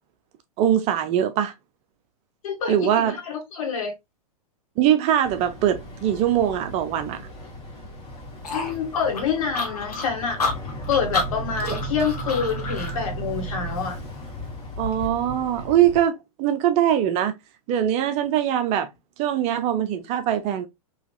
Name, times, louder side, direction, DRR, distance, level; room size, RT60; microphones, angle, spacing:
voice 1, 0.6-1.5 2.7-3.2 4.8-7.2 11.7-11.8 14.8-16.1 16.4-17.3 17.7-18.9 19.2-20.7, right 10 dB, 35° right, 0.6 m, -22 dB
voice 2, 2.4-3.9 8.5-10.4 10.9-14.0, left 6 dB, 60° left, 1.8 m, -27 dB
Boat Water vehicle, 5.2-16.0, right 1 dB, 25° left, 1.7 m, -35 dB
sound 1, 8.4-13.0, left 3 dB, 80° left, 1.3 m, -29 dB
4.0 x 2.9 x 2.3 m
hypercardioid pair, 110°, 20 cm